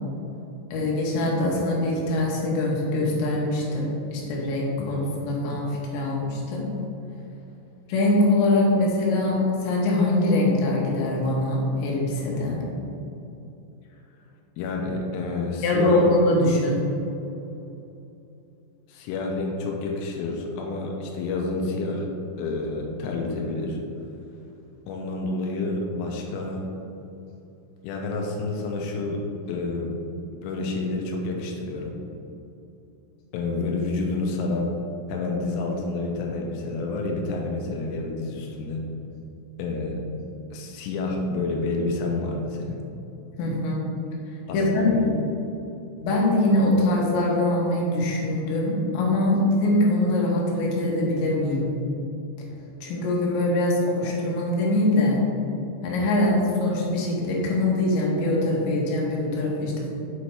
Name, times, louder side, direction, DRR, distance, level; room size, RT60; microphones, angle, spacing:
voice 1, 0.7-6.7 7.9-12.6 15.6-16.8 43.4-43.8 44.5-45.0 46.0-51.6 52.8-55.2 55.8-59.9, left 1 dB, 70° left, -3 dB, 3.1 m, -23 dB
voice 2, 14.6-16.0 18.9-22.1 22.4-23.8 24.9-26.6 27.8-29.2 29.5-30.0 30.4-32.0 33.3-34.7 35.1-38.8 39.6-40.0 40.5-42.8 44.5-45.1, left 3 dB, 90° left, 0 dB, 3.3 m, -29 dB
7.4 x 4.2 x 4.6 m, 2.8 s
omnidirectional pair, 5.6 m